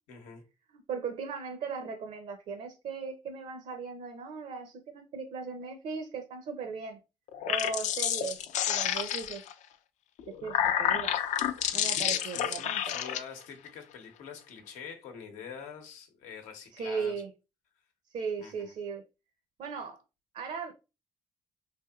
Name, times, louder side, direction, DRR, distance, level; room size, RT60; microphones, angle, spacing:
voice 1, 0.1-0.4 12.2-17.1 18.4-18.7, left 6 dB, 90° left, 0.8 m, -45 dB
voice 2, 0.7-7.0 7.5-9.4 10.3-11.1 11.7-12.9 16.7-17.3 18.1-19.0 19.6-20.0 20.3-20.7, right 5 dB, 65° right, 0.6 m, -37 dB
sound 1, 7.3-9.5 10.2-13.2, left 10 dB, 70° left, 0.4 m, -29 dB
3.4 x 2.8 x 2.3 m
supercardioid pair, 75°, 13 cm